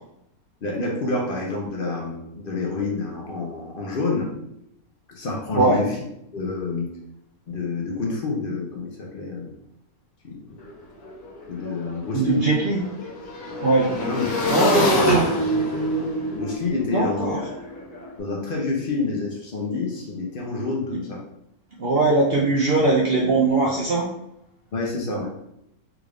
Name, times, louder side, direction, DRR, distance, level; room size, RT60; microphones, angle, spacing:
voice 1, 0.6-4.3 5.1-6.0 6.3-6.9 7.5-9.5 10.2-10.4 11.5-12.4 14.1-14.7 15.0-15.1 16.3-17.3 18.2-21.2 24.7-25.3, left 3 dB, 60° left, -2 dB, 0.6 m, -28 dB
Motorcycle / Engine, 10.6-10.7 11.0-18.1, equal, 80° left, 1.5 m, -26 dB
voice 2, 12.1-12.8 13.6-13.9 14.5-15.3 16.9-17.4 20.9-21.0 21.8-24.1, right 2 dB, 75° right, -3 dB, 0.5 m, -20 dB
3.6 x 2.4 x 3.3 m, 0.80 s
omnidirectional pair, 1.6 m